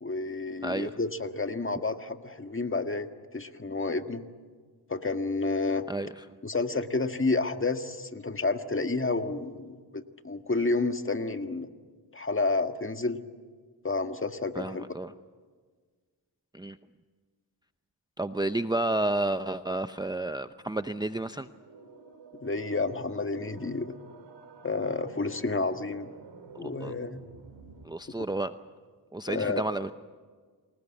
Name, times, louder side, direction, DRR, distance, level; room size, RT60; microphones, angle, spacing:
voice 1, 0.0-4.2 4.9-5.9 6.4-11.7 12.1-13.2 13.8-14.8 22.4-23.9 24.6-26.1 26.6-27.2 29.3-29.6, left 3 dB, 25° left, 7 dB, 1.8 m, -30 dB
voice 2, 5.9-6.2 14.5-15.1 16.5-16.8 18.2-21.5 26.5-26.9 27.8-28.5 29.1-29.9, right 2 dB, 10° right, 10 dB, 0.7 m, -31 dB
sound 1, 21.4-27.8, right 4 dB, 65° right, 3.7 m, -51 dB
28.5 x 19.5 x 8.6 m, 1.5 s
cardioid pair, 60°, 45 cm